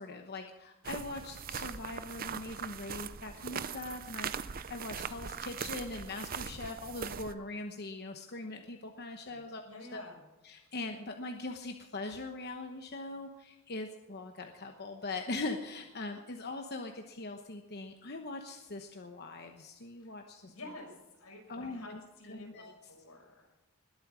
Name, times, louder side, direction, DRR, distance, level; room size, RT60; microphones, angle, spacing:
voice 1, 0.0-9.6 9.9-10.0 10.4-20.5 21.5-22.0 22.3-22.7, left 2 dB, 50° left, 4 dB, 1.0 m, -41 dB
sound 1, 0.8-7.3, right 7 dB, 40° right, 0.6 m, -41 dB
voice 2, 9.6-10.2 10.6-10.7 20.0-20.1 20.4-23.5, left 1 dB, 90° left, 1 dB, 5.7 m, -51 dB
20.5 x 8.8 x 6.2 m, 1.1 s
head